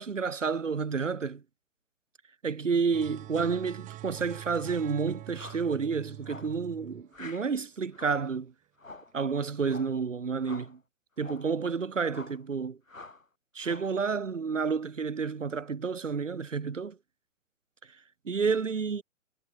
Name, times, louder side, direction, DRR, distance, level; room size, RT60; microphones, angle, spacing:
voice 1, 0.0-1.4 2.4-8.5 9.1-10.8 11.2-12.8 13.5-17.0 18.3-19.0, right 5 dB, 70° right, 1.9 m, -30 dB
sound 1, 2.9-8.3, right 15 dB, 20° right, 5.4 m, -45 dB
sound 2, 5.3-5.7 6.2-6.6 7.1-7.5 7.9-8.3 8.8-9.2 9.6-10.0 10.4-10.8 11.2-11.5 12.1-12.4 12.9-13.2 13.6-14.0, left 3 dB, 85° left, 1.7 m, -47 dB
figure-of-eight pair, 125°, 39 cm